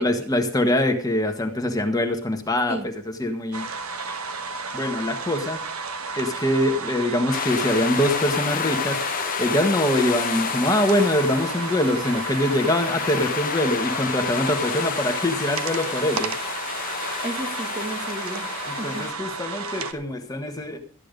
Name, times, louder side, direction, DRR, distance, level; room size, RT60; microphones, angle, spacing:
voice 1, 0.0-2.8 3.2-3.7 4.7-5.6 6.2-9.0 9.4-16.3 18.7-20.8, left 1 dB, 15° left, 4 dB, 1.3 m, -23 dB
sound 1, 3.5-19.9, right 4 dB, 75° right, 1.4 m, -32 dB
sound 2, 7.3-19.1, left 8 dB, 40° left, 0.5 m, -30 dB
voice 2, 17.2-19.3, right 1 dB, 25° right, 5 dB, 1.6 m, -34 dB
13.5 x 9.7 x 5.2 m, 0.43 s
head